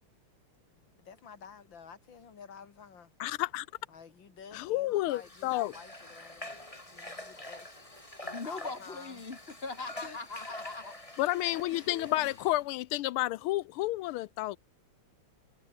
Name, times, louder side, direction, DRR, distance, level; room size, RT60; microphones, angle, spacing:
voice 1, 1.0-3.1 3.9-7.9 8.4-9.2 10.0-10.2, left 6 dB, 60° left, 2.9 m, -51 dB
voice 2, 3.2-3.7 4.5-5.7 11.2-14.6, left 17 dB, 80° left, 1.5 m, -30 dB
Water / Water tap faucet, 5.1-12.6, left 1 dB, 15° left, 3.6 m, -46 dB
voice 3, 8.2-10.9 11.4-12.3, left 3 dB, 30° left, 1.6 m, -41 dB
omnidirectional pair, 2.4 m